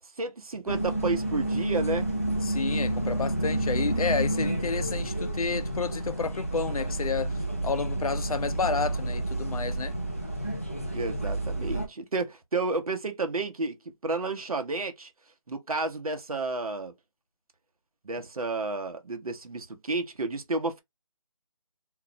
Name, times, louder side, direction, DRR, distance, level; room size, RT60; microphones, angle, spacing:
voice 1, 0.2-2.1 10.9-13.8 14.0-15.1 15.5-16.9 18.0-20.8, right 3 dB, 80° right, 0.8 m, -31 dB
sound 1, 0.7-11.9, right 1 dB, 25° left, 0.4 m, -30 dB
voice 2, 2.4-10.0, left 5 dB, 85° left, 0.5 m, -31 dB
2.4 x 2.0 x 3.7 m
figure-of-eight pair, 175°, 18 cm